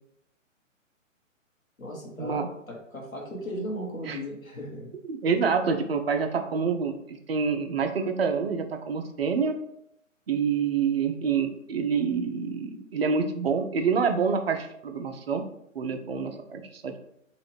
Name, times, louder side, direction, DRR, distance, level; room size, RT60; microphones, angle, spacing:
voice 1, 1.8-4.9, equal, 90° left, -1 dB, 1.1 m, -36 dB
voice 2, 5.1-9.6 10.3-15.5 15.8-17.0, right 5 dB, 50° right, 6 dB, 0.4 m, -27 dB
2.9 x 2.4 x 3.2 m, 0.75 s
figure-of-eight pair, 130°, 40 cm